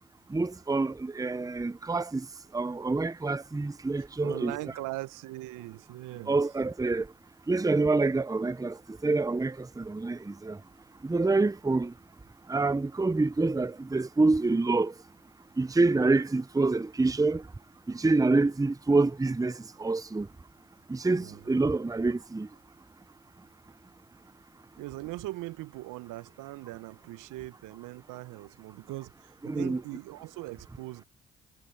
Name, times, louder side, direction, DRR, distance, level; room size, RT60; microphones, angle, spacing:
voice 1, 0.3-2.2 2.5-4.5 6.3-7.0 7.5-8.7 9.0-10.2 10.4-10.6 11.1-11.9 12.5-14.9 15.6-17.4 17.9-19.5 19.8-20.3 20.9-22.5 29.5-29.8, right 3 dB, 10° right, 0.8 m, -26 dB
voice 2, 4.2-6.4 21.1-21.6 24.8-31.0, right 19 dB, 75° right, 1.3 m, -40 dB
hypercardioid pair, 45°, 32 cm